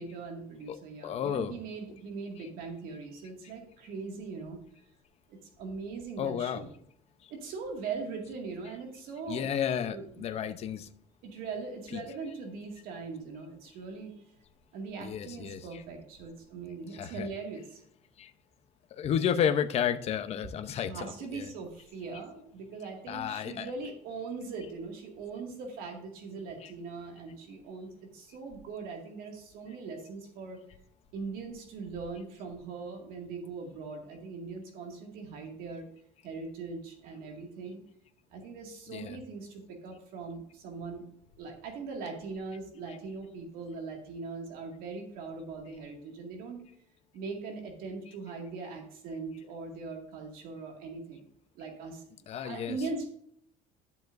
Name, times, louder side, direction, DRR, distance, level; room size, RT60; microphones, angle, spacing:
voice 1, 0.0-4.6 5.3-6.7 7.3-9.5 9.9-10.3 11.2-14.1 14.7-17.8 20.9-30.6 31.1-35.9 36.2-37.8 38.3-41.1 41.4-46.6 47.1-51.2 51.6-53.1, right 4 dB, 70° right, 2 dB, 2.1 m, -40 dB
voice 2, 1.0-1.6 6.2-6.6 9.3-10.9 11.9-12.0 15.0-15.6 16.9-17.3 19.0-21.5 23.1-23.7 38.9-39.2 52.3-52.9, left 8 dB, 45° left, 9 dB, 0.8 m, -32 dB
12.0 x 7.1 x 2.6 m, 0.69 s
cardioid pair, 145°, 15 cm